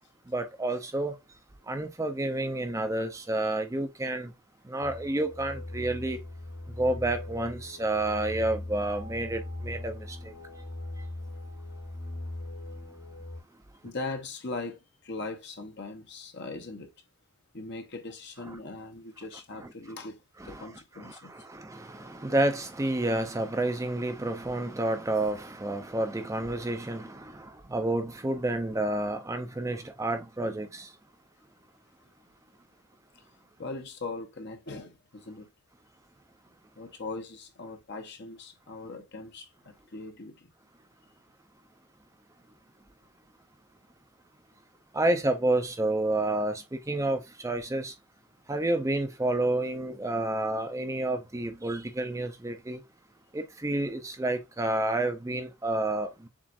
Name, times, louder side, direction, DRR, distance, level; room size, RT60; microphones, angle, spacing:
voice 1, 0.3-1.2 1.7-4.3 4.6-6.2 6.8-10.3 20.4-20.7 21.0-30.9 44.9-47.9 48.5-52.8 53.3-56.3, right 2 dB, 15° right, 0.5 m, -30 dB
sound 1, 4.8-13.4, left 1 dB, 75° left, 2.9 m, -40 dB
voice 2, 13.8-16.9 17.5-20.2 20.4-21.3 33.6-35.5 36.8-40.5, left 3 dB, 50° left, 0.9 m, -40 dB
7.2 x 2.5 x 2.5 m
head